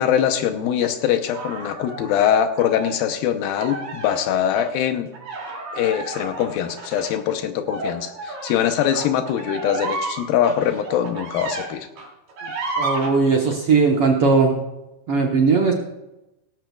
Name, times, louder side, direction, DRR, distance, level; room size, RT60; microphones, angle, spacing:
voice 1, 0.0-5.1 5.7-11.9, left 9 dB, 80° left, 6 dB, 2.6 m, -22 dB
sound 1, 1.3-3.0 3.4-4.2 4.6-4.7 5.1-11.7 12.0-13.1, right 3 dB, 90° right, 5.8 m, -32 dB
voice 2, 12.8-14.6 15.1-15.7, right 4 dB, 70° right, 0 dB, 1.4 m, -18 dB
18.5 x 15.0 x 2.3 m, 0.96 s
omnidirectional pair, 4.3 m